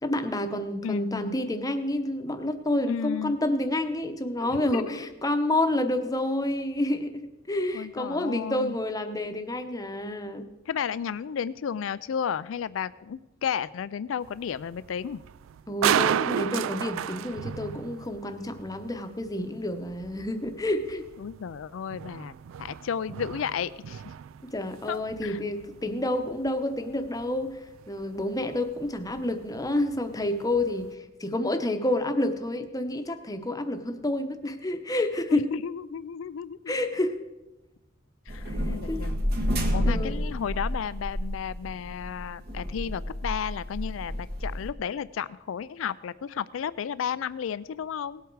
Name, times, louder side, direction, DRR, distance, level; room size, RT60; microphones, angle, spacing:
voice 1, 0.0-10.5 15.7-21.0 24.4-27.6 27.9-35.5 36.7-37.2 38.5-39.1 39.8-40.2, left 1 dB, 20° left, 8 dB, 0.9 m, -29 dB
voice 2, 0.8-1.3 2.9-3.4 4.4-5.0 7.7-8.8 10.7-15.2 21.2-24.0 24.9-25.4 35.3-36.7 38.3-39.2 39.7-48.2, left 7 dB, 75° left, 17 dB, 0.4 m, -33 dB
sound 1, 14.2-30.9, right 9 dB, 80° right, 0.3 m, -35 dB
sound 2, 38.3-44.7, equal, 55° right, 1.6 m, -30 dB
18.5 x 8.2 x 4.7 m, 1.0 s
head